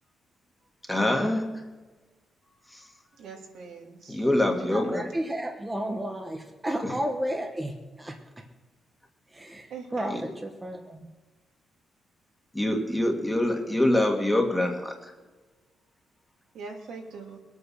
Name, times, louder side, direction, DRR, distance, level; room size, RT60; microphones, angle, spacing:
voice 1, 0.9-1.5 2.7-2.8 4.1-5.1 6.8-6.9 10.1-10.2 12.5-15.1, left 1 dB, 5° left, 2 dB, 1.7 m, -25 dB
voice 2, 3.2-4.3 9.7-10.1 16.5-17.4, right 4 dB, 75° right, 1 dB, 2.7 m, -42 dB
voice 3, 4.7-8.2 9.3-11.1, right 1 dB, 10° right, 3 dB, 1.0 m, -32 dB
21.5 x 8.4 x 6.4 m, 1.2 s
cardioid pair, 165°, 0 cm